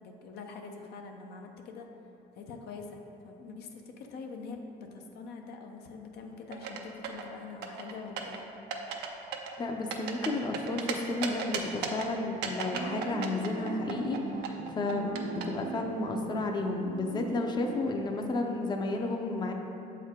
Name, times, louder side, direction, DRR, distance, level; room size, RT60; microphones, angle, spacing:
voice 1, 0.0-1.9 2.4-8.4, left 4 dB, 75° left, 3 dB, 0.6 m, -44 dB
sound 1, 6.5-7.3 7.6-8.4 8.7-9.1 9.3-10.9 11.2-12.1 12.4-15.4, right 7 dB, 85° right, 0.6 m, -35 dB
voice 2, 9.6-14.2 14.7-19.5, left 2 dB, 25° left, 3 dB, 0.5 m, -32 dB
sound 2, 12.7-17.9, right 6 dB, 40° right, 0.4 m, -39 dB
7.2 x 4.6 x 3.6 m, 2.9 s
cardioid pair, 110°, 17 cm